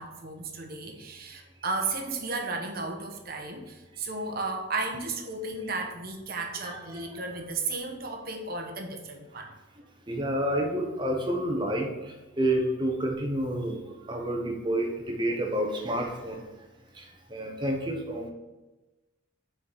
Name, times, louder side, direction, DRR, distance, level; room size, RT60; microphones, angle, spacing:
voice 1, 0.0-9.5, right 3 dB, 50° right, 3 dB, 1.0 m, -34 dB
voice 2, 6.6-7.2 10.1-16.4 16.9-18.3, right 1 dB, 25° right, 1 dB, 1.1 m, -29 dB
6.2 x 4.8 x 5.8 m, 1.1 s
head